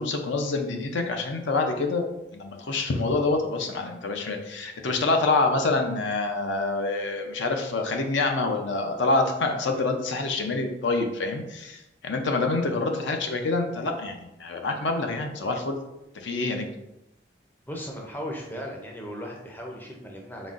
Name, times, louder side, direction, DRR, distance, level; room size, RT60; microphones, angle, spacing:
voice 1, 0.0-15.8 16.1-16.7, left 3 dB, 70° left, 4 dB, 0.5 m, -26 dB
voice 2, 17.7-20.5, equal, 10° left, 0 dB, 0.5 m, -37 dB
4.0 x 3.8 x 2.4 m, 0.91 s
head